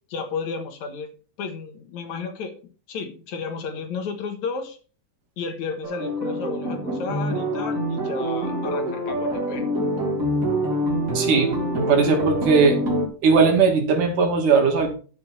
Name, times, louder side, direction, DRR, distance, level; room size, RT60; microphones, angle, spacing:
voice 1, 0.1-1.1 1.4-2.5 2.9-4.8 5.4-9.6, left 5 dB, 70° left, 6 dB, 2.7 m, -32 dB
sound 1, 5.8-13.1, equal, 25° right, 2.7 m, -25 dB
voice 2, 11.1-12.8 13.2-14.9, right 5 dB, 80° right, 3 dB, 3.7 m, -19 dB
11.5 x 7.4 x 4.1 m, 0.39 s
omnidirectional pair, 3.6 m